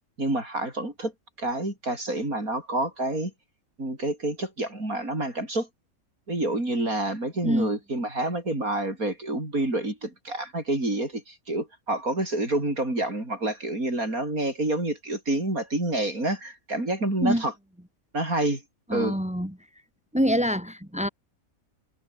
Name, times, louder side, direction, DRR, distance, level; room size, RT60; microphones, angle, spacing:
voice 1, 0.2-1.1 1.4-3.3 3.8-5.7 6.3-17.5 18.1-18.6 18.9-19.2, right 1 dB, 80° right, 8.3 m, -28 dB
voice 2, 18.9-19.5 20.1-21.1, equal, 5° right, 5.2 m, -25 dB
omnidirectional pair, 1.5 m